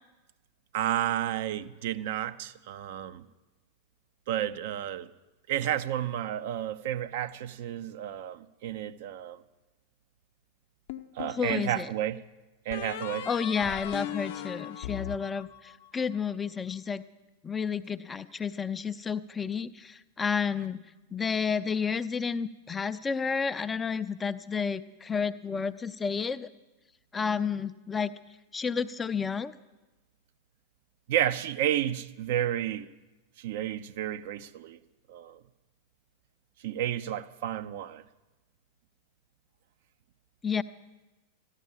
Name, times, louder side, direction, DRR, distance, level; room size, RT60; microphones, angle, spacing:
voice 1, 0.7-3.2 4.3-5.1 5.5-9.4 11.1-12.2 12.6-13.3 31.1-32.9 33.4-34.8 35.1-35.4 36.6-38.0, right 11 dB, 50° right, 0.6 m, -31 dB
sound 1, 10.9-11.7 12.7-16.0, left 12 dB, 50° left, 0.8 m, -38 dB
voice 2, 11.3-11.9 13.3-17.0 17.4-20.8 21.1-26.5 27.1-28.2 28.5-29.5 40.4-40.6, left 6 dB, 15° left, 0.5 m, -31 dB
14.5 x 11.5 x 7.2 m
figure-of-eight pair, 90°, 0 cm